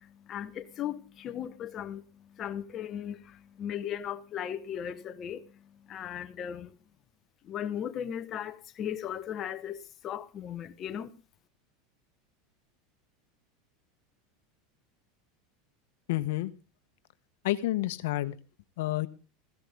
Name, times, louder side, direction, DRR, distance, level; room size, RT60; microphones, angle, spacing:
voice 1, 0.0-6.8 7.4-11.1, left 9 dB, 30° left, 1.0 m, -37 dB
voice 2, 16.1-16.5 17.4-18.4 18.8-19.1, left 16 dB, 75° left, 1.0 m, -29 dB
15.5 x 15.5 x 3.5 m
supercardioid pair, 150°, 0 cm